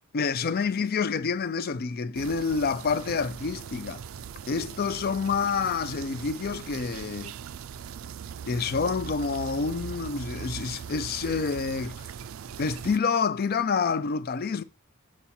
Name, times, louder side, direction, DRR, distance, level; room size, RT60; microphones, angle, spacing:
voice 1, 0.1-4.0 4.5-7.3 8.5-12.1 12.6-14.6, left 5 dB, 50° left, 0.4 m, -28 dB
sound 1, 2.1-13.0, right 8 dB, 75° right, 0.4 m, -40 dB
7.2 x 4.6 x 4.3 m
head